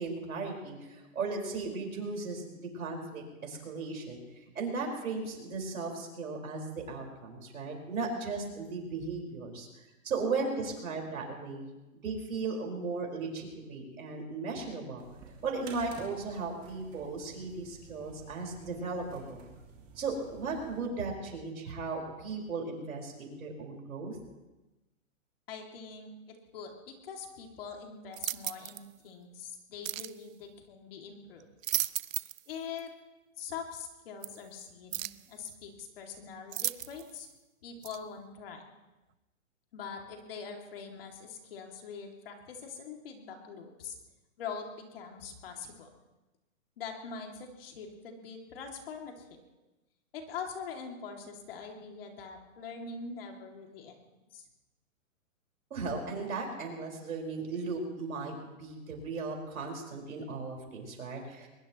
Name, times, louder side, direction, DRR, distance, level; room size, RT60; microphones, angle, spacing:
voice 1, 0.0-4.2 4.5-9.7 10.0-11.7 12.0-15.1 15.4-19.5 19.9-24.2 55.7-61.5, right 4 dB, 90° right, 1 dB, 5.1 m, -36 dB
sound 1, 15.0-20.9, right 4 dB, 20° right, 2.2 m, -52 dB
voice 2, 25.5-31.5 32.5-32.9 33.4-37.3 37.6-38.7 39.7-44.0 44.4-45.9 46.8-49.4 50.1-54.0 54.3-54.4, left 5 dB, 45° left, 2 dB, 2.6 m, -43 dB
sound 2, 28.1-28.9 29.8-30.2 31.4-32.5 32.8-32.9 34.2-34.3 34.9-35.3 36.5-37.2 37.8-38.0, right 12 dB, 75° right, 0.6 m, -35 dB
22.0 x 21.0 x 3.1 m, 1.1 s
hypercardioid pair, 165°, 41 cm